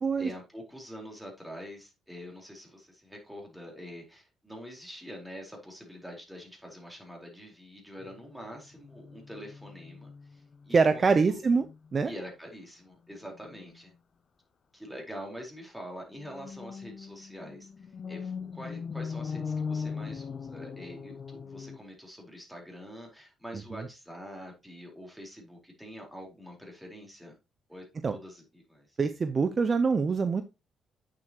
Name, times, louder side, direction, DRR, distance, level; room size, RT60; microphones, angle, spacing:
voice 1, 0.2-11.4 12.0-13.9 14.7-17.7 18.1-27.3 27.7-29.0, equal, 5° right, 4.3 m, -45 dB
sound 1, 8.0-10.8 11.1-11.3 11.6-12.0 13.3-13.7 16.1-21.8, left 5 dB, 50° left, 0.7 m, -39 dB
voice 2, 10.7-11.6 11.9-12.1 23.7-23.8 28.0-28.2 29.0-30.4, right 4 dB, 40° right, 0.7 m, -24 dB
8.6 x 7.5 x 3.0 m
cardioid pair, 90°, 0 cm